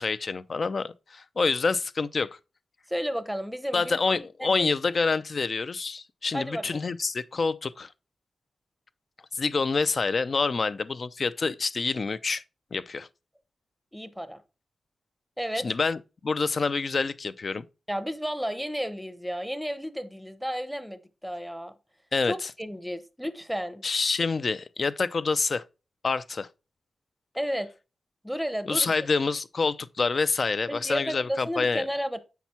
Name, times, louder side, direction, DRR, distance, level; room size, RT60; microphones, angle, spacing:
voice 1, 0.0-2.3 3.7-7.9 9.3-12.4 12.7-13.1 15.5-17.6 22.1-22.5 23.8-25.6 26.0-26.5 28.6-31.8, left 4 dB, 40° left, 0.6 m, -27 dB
voice 2, 2.9-4.0 4.4-4.7 6.3-6.8 13.9-14.4 15.4-15.7 17.9-21.7 22.3-23.8 27.3-27.7 28.2-28.9 30.7-32.2, equal, ahead, 0.9 m, -32 dB
8.2 x 5.9 x 4.3 m
wide cardioid pair, 155°, 0 cm